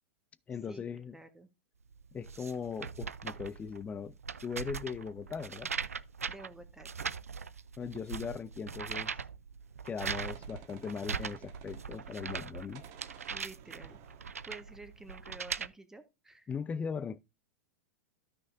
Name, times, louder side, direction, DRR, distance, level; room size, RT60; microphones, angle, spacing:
voice 1, 0.5-1.1 2.1-4.2 4.4-5.7 7.8-9.1 9.8-12.8 16.5-17.2, left 6 dB, 20° left, 0.5 m, -39 dB
voice 2, 1.1-1.5 6.3-7.1 13.3-14.0 14.5-16.5, right 2 dB, 5° right, 1.4 m, -50 dB
sound 1, 1.9-15.7, right 6 dB, 85° right, 0.5 m, -41 dB
Gunshot gunfire, 9.6-12.5 12.7-15.5, right 10 dB, 45° right, 1.5 m, -56 dB
13.0 x 6.0 x 2.6 m
hypercardioid pair, 100°, 8 cm